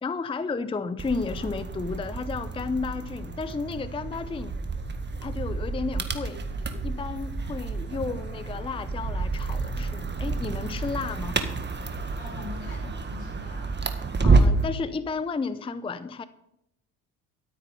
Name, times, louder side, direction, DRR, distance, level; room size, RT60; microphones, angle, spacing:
voice 1, 0.0-4.5 5.2-6.4 6.8-11.4 14.2-16.2, left 4 dB, 10° left, 14 dB, 0.6 m, -32 dB
sound 1, 1.0-14.7, right 3 dB, 25° right, 1.7 m, -29 dB
voice 2, 12.2-13.8, left 4 dB, 70° left, -1 dB, 5.5 m, -44 dB
13.0 x 8.9 x 5.5 m, 0.82 s
hypercardioid pair, 55°, 44 cm